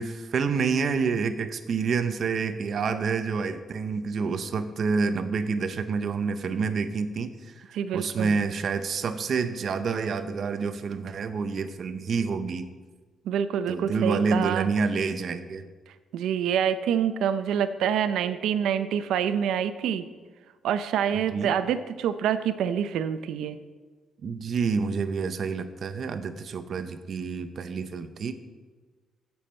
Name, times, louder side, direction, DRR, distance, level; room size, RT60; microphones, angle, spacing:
voice 1, 0.0-12.7 13.7-15.6 21.1-21.5 24.2-28.3, right 5 dB, 40° right, 9 dB, 0.6 m, -28 dB
voice 2, 7.7-8.4 13.3-14.7 16.1-20.1 20.6-23.6, right 8 dB, 85° right, 11 dB, 0.6 m, -26 dB
16.0 x 7.1 x 4.4 m, 1.4 s
cardioid pair, 175°, 0 cm